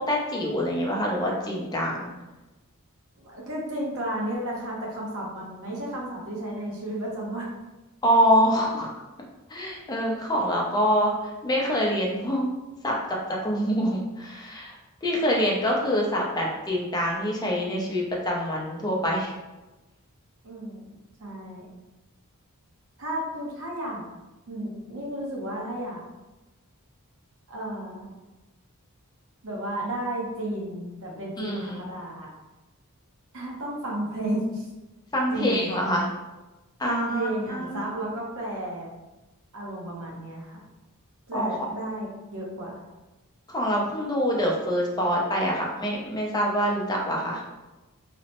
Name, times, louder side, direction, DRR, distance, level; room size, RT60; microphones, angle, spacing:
voice 1, 0.0-2.1 8.0-8.9 9.5-12.5 12.8-12.9 13.4-19.3 31.4-31.8 35.1-36.1 36.8-37.8 41.3-41.5 43.5-47.4, equal, 20° left, -2 dB, 0.5 m, -25 dB
voice 2, 3.2-7.5 20.4-20.8 21.2-21.6 23.0-24.0 24.5-26.0 27.5-28.1 29.4-32.3 33.3-34.7 35.3-35.8 36.8-39.0 39.5-40.6 41.3-42.8, right 1 dB, 65° right, -3 dB, 0.7 m, -33 dB
2.9 x 2.0 x 2.9 m, 1.1 s
head